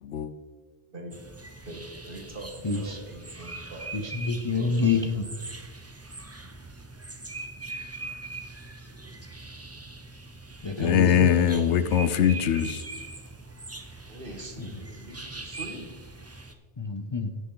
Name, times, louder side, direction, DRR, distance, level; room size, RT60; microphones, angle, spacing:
voice 1, 0.0-0.3 10.8-12.9, left 9 dB, 80° left, 12 dB, 1.0 m, -22 dB
sound 1, 1.1-16.5, right 3 dB, 15° right, 0.6 m, -42 dB
voice 2, 1.7-3.9 4.5-5.2 14.1-15.9 16.2-16.3, right 1 dB, 50° right, 1 dB, 1.9 m, -42 dB
voice 3, 2.6-3.0 3.9-5.2 10.6-11.3 14.6-14.7 16.8-17.3, left 4 dB, 30° left, 4 dB, 0.6 m, -27 dB
16.5 x 6.2 x 3.9 m, 1.4 s
omnidirectional pair, 1.2 m